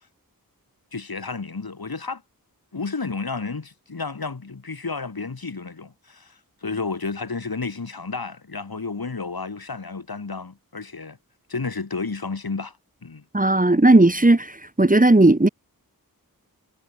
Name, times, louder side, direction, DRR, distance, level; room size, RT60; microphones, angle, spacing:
voice 1, 0.9-2.2 2.7-11.2 11.5-12.8 13.0-13.2, left 4 dB, 75° left, 7.3 m, -31 dB
voice 2, 13.3-14.5 14.8-15.5, right 2 dB, 20° right, 1.8 m, -15 dB
wide cardioid pair, 60°, 37 cm